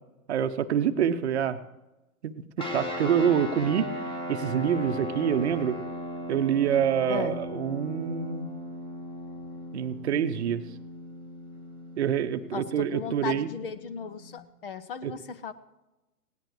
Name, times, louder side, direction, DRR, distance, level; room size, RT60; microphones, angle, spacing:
voice 1, 0.3-1.6 2.2-5.8 6.3-8.5 9.7-10.6 12.0-13.5 15.0-15.1, right 8 dB, 45° right, 10 dB, 0.9 m, -26 dB
sound 1, 2.6-14.4, left 1 dB, 10° left, 1.5 m, -37 dB
voice 2, 7.1-7.4 12.5-15.5, left 7 dB, 35° left, 14 dB, 0.8 m, -36 dB
19.0 x 17.5 x 3.3 m, 1.0 s
figure-of-eight pair, 115°, 46 cm